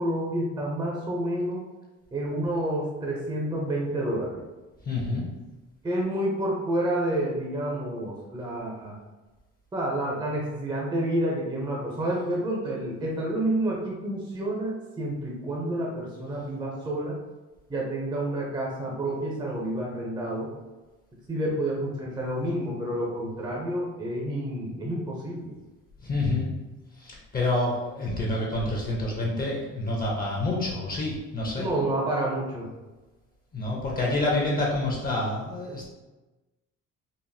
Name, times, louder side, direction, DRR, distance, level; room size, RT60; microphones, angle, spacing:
voice 1, 0.0-1.6 2.1-4.4 5.8-9.0 9.7-17.2 17.7-20.5 21.3-25.5 31.6-32.7, right 1 dB, 15° right, -3 dB, 0.7 m, -29 dB
voice 2, 4.8-5.3 26.0-26.6 27.0-31.7 33.5-35.9, left 2 dB, 30° left, -3 dB, 0.8 m, -28 dB
4.1 x 2.6 x 2.7 m, 1.1 s
cardioid pair, 120°, 31 cm